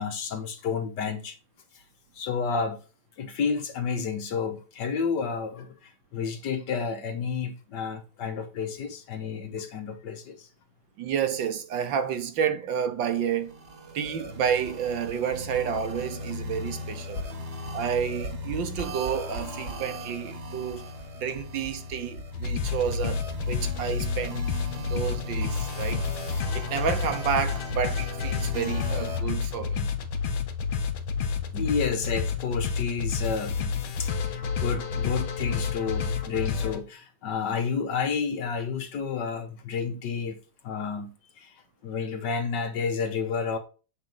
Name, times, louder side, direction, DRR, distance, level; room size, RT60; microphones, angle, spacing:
voice 1, 0.0-1.4 2.1-2.8 3.2-10.5 31.5-33.7 34.0-41.5 41.8-43.6, left 5 dB, 60° left, 1.4 m, -31 dB
voice 2, 11.0-13.5 13.9-17.2 17.7-20.8 21.2-24.4 24.9-29.9, right 8 dB, 70° right, 1.5 m, -30 dB
sound 1, 13.2-29.2, equal, 35° right, 1.4 m, -38 dB
sound 2, 22.3-36.8, left 6 dB, 80° left, 1.8 m, -30 dB
7.4 x 4.5 x 3.8 m
omnidirectional pair, 2.3 m